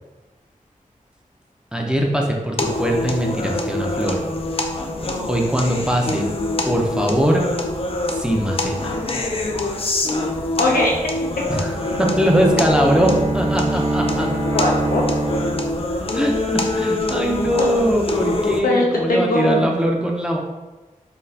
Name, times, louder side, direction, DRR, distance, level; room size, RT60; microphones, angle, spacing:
voice 1, 1.7-4.2 5.3-6.3 6.6-7.5 8.1-9.0 11.5-11.7 12.0-14.3 16.1-20.4, equal, 5° right, -1 dB, 0.5 m, -21 dB
sound 1, 2.6-18.6, left 2 dB, 40° left, 0.4 m, -25 dB
voice 2, 10.6-11.1 14.5-15.0 15.3-15.4 17.6-17.7 18.6-19.7, left 1 dB, 85° left, -2 dB, 0.7 m, -20 dB
Bowed string instrument, 11.6-16.3, right 2 dB, 55° right, 1.2 m, -24 dB
4.0 x 2.3 x 2.7 m, 1.2 s
wide cardioid pair, 60°, 14 cm